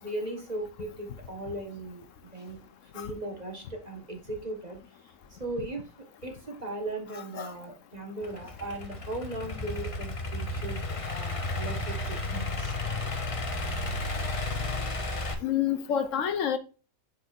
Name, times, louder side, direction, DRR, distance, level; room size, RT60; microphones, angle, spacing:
voice 1, 0.0-2.1 2.3-2.6 2.9-4.8 5.3-5.9 6.2-12.8, right 2 dB, 30° right, 1.3 m, -38 dB
Idling / Accelerating revving vroom, 8.2-15.3, left 2 dB, 30° left, 0.8 m, -33 dB
voice 2, 15.4-16.6, left 9 dB, 70° left, 1.0 m, -27 dB
7.8 x 5.1 x 2.4 m
omnidirectional pair, 1.4 m